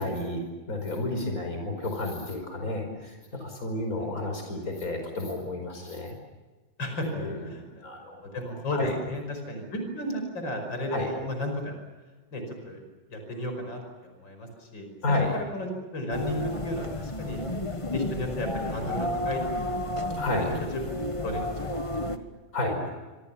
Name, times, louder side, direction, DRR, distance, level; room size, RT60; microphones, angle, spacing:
voice 1, 0.0-6.2 7.1-8.3 8.7-8.9 10.9-11.1 15.0-15.3 20.1-20.5 22.5-22.8, left 2 dB, 50° left, 4 dB, 5.6 m, -31 dB
voice 2, 4.0-4.3 6.8-7.9 8.2-11.8 12.3-12.8 13.1-17.4 17.9-20.1 20.6-20.7 21.2-22.3, left 1 dB, 85° left, 5 dB, 6.1 m, -34 dB
sound 1, 16.1-22.2, left 1 dB, 20° left, 1.3 m, -32 dB
26.0 x 25.0 x 7.1 m, 1.2 s
omnidirectional pair, 2.0 m